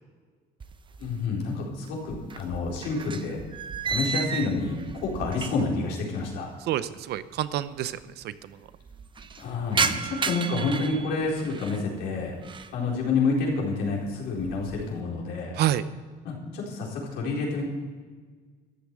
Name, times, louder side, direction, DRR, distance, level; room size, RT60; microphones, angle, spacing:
sound 1, 0.6-1.5 1.8-5.9 6.1-6.2 7.1-7.2 7.4-7.5 7.7-8.2 8.6-11.8 12.3-12.8 13.2-13.6 14.0-14.9, right 5 dB, 30° right, 0.7 m, -33 dB
voice 1, 1.0-3.4 3.8-6.5 9.4-12.4 12.7-15.6 16.2-17.7, left 3 dB, 85° left, -2 dB, 4.3 m, -29 dB
voice 2, 6.7-8.6 9.9-10.1 15.6-15.8, right 12 dB, 75° right, 14 dB, 0.7 m, -29 dB
13.5 x 8.5 x 7.7 m, 1.5 s
cardioid pair, 110°, 17 cm